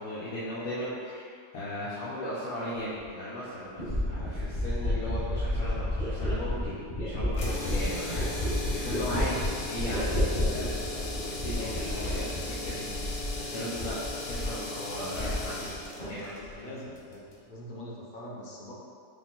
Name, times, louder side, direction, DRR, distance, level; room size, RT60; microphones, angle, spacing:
voice 1, 0.0-14.0 14.3-15.8 16.1-16.7, left 1 dB, 85° left, -8 dB, 1.1 m, -37 dB
sound 1, 3.8-13.5 13.7-14.6 14.9-15.7 16.0-16.5, left 1 dB, 30° left, 1.7 m, -31 dB
sound 2, 7.3-17.4, left 2 dB, 65° left, 1.0 m, -38 dB
voice 2, 11.5-12.1 13.7-13.9 16.5-18.7, left 1 dB, 50° left, -4 dB, 0.6 m, -43 dB
5.0 x 2.5 x 3.6 m, 2.2 s
omnidirectional pair, 1.5 m